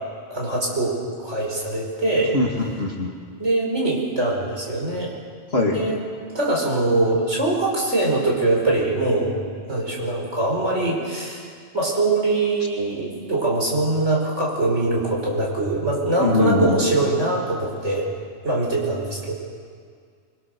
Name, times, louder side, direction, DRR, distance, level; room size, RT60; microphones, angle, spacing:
voice 1, 0.3-2.3 3.4-5.1 5.6-6.0 6.3-9.4 9.7-11.5 11.7-18.1 18.4-19.3, right 2 dB, 75° right, -2 dB, 5.5 m, -22 dB
voice 2, 2.3-3.1 5.5-5.8 16.2-16.8, left 2 dB, 60° left, 0 dB, 2.4 m, -21 dB
24.5 x 23.5 x 6.7 m, 2.1 s
omnidirectional pair, 1.2 m